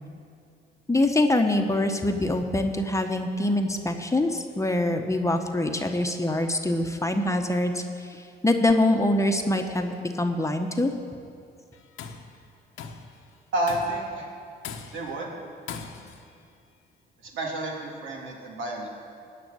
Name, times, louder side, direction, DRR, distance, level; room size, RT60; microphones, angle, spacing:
voice 1, 0.9-7.8 8.1-10.9, left 1 dB, 15° left, 4 dB, 1.1 m, -24 dB
Tools, 11.7-12.3 12.8-13.1 13.7-14.1 14.6-15.2 15.7-16.2, left 6 dB, 85° left, 1.2 m, -39 dB
voice 2, 13.5-14.3 14.9-15.3 17.2-18.9, right 1 dB, 75° right, -2 dB, 2.9 m, -30 dB
17.5 x 6.0 x 9.5 m, 2.4 s
cardioid pair, 90°, 20 cm